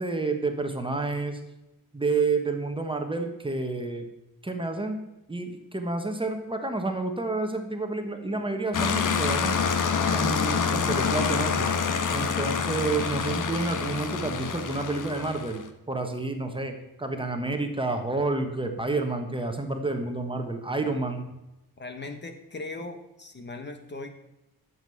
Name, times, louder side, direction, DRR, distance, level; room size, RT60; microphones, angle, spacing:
voice 1, 0.0-1.4 1.9-4.0 4.4-5.0 5.3-9.6 10.1-11.7 12.1-21.3, right 3 dB, 15° right, 4 dB, 1.4 m, -29 dB
sound 1, 8.7-15.6, left 6 dB, 55° left, 1.3 m, -27 dB
voice 2, 21.8-24.1, left 3 dB, 30° left, 6 dB, 1.3 m, -39 dB
13.0 x 7.6 x 7.8 m, 0.94 s
wide cardioid pair, 160°, 37 cm